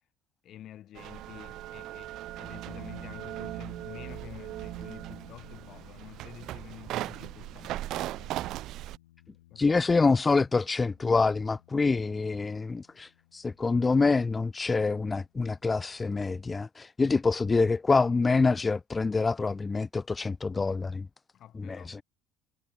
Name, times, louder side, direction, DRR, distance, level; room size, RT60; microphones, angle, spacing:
voice 1, 0.4-8.4 9.5-9.8 21.3-22.0, left 12 dB, 55° left, 2.0 m, -49 dB
sound 1, 1.0-9.0, right 15 dB, 60° right, 0.8 m, -38 dB
sound 2, 2.7-15.8, left 16 dB, 80° left, 6.3 m, -57 dB
voice 2, 9.6-21.1 21.6-22.0, left 4 dB, 25° left, 0.3 m, -26 dB
hypercardioid pair, 60°, 0 cm